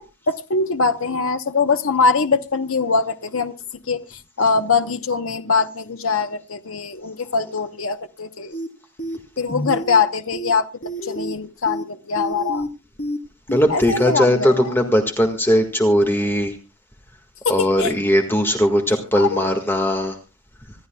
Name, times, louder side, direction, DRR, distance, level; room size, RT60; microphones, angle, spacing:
voice 1, 0.0-3.5 3.9-8.5 9.4-10.7 11.0-12.7 13.7-14.7 17.4-17.9 19.2-19.5, left 4 dB, 70° left, 0.9 m, -22 dB
sound 1, 8.5-8.7 9.0-9.2 9.5-10.0 10.3-10.5 10.8-11.3 11.7-11.8 12.2-12.7 13.0-13.2 13.5-13.6, right 1 dB, 45° left, 3.3 m, -28 dB
voice 2, 13.5-16.6 17.5-20.2, equal, 10° left, 1.7 m, -19 dB
26.0 x 12.5 x 2.3 m
head